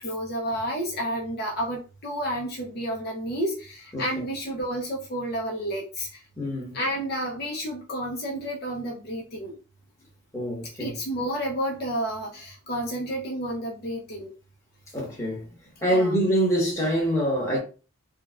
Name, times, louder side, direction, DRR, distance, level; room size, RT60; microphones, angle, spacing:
voice 1, 0.0-6.1 6.7-9.6 10.8-14.3 15.9-16.2, equal, 50° left, 0.7 m, -30 dB
voice 2, 6.4-6.8 10.3-10.9 14.9-15.5 15.8-17.6, equal, 15° left, 1.3 m, -25 dB
3.9 x 2.3 x 2.4 m
head